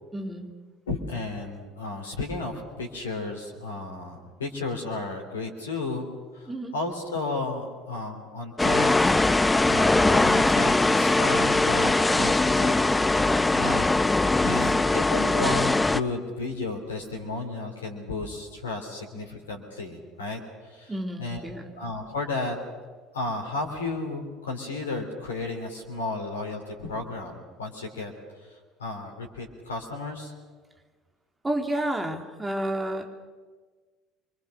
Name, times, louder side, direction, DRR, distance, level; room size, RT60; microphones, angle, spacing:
voice 1, 0.1-0.5 6.5-6.7 14.4-15.0 20.9-21.7 31.4-33.1, right 1 dB, 15° right, 4 dB, 3.5 m, -31 dB
voice 2, 0.9-6.1 6.3-20.9 21.2-21.4 21.7-22.6 23.1-28.1 28.4-30.3, left 2 dB, 75° left, 2 dB, 3.2 m, -33 dB
sound 1, 8.6-16.0, left 2 dB, 15° left, 0.9 m, -21 dB
26.5 x 24.0 x 6.6 m, 1.4 s
figure-of-eight pair, 60°, 0 cm